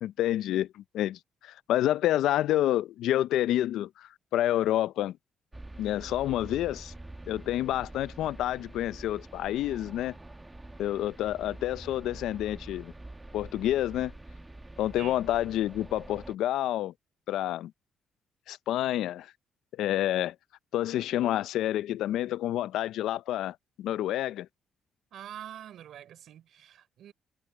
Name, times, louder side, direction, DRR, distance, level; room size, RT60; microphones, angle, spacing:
voice 1, 0.0-5.2 5.8-6.9 7.3-10.1 10.8-12.9 13.3-14.1 14.8-16.9 17.3-17.7 18.5-19.3 19.8-20.3 20.7-24.5, left 13 dB, 85° left, 0.4 m, -29 dB
sound 1, 5.5-16.3, right 2 dB, 15° right, 1.3 m, -46 dB
voice 2, 25.1-27.1, right 10 dB, 70° right, 3.6 m, -45 dB
cardioid pair, 90°, 0 cm